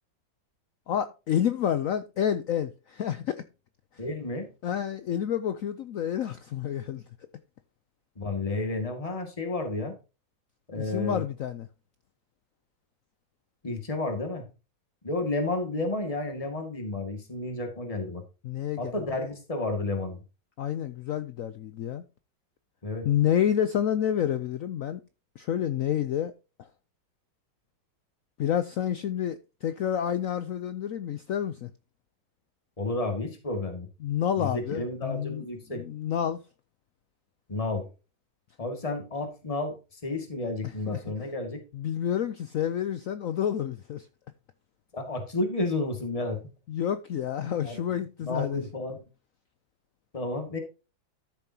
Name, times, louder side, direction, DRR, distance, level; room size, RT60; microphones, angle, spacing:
voice 1, 0.9-3.4 4.6-7.0 10.8-11.7 18.4-19.0 20.6-22.0 23.0-25.0 25.4-26.3 28.4-31.7 34.0-35.4 35.7-36.4 40.9-41.0 41.7-44.1 46.7-48.6, left 9 dB, 80° left, 0.7 m, -29 dB
voice 2, 4.0-4.5 8.2-9.9 10.7-11.2 13.6-14.5 15.0-18.2 18.8-20.2 22.8-23.1 32.8-33.9 34.4-35.8 37.5-37.9 38.6-39.8 40.0-41.6 44.9-46.4 47.6-47.8 48.2-49.0 50.1-50.6, left 2 dB, 20° left, 2.0 m, -31 dB
13.0 x 7.0 x 2.8 m
omnidirectional pair, 2.0 m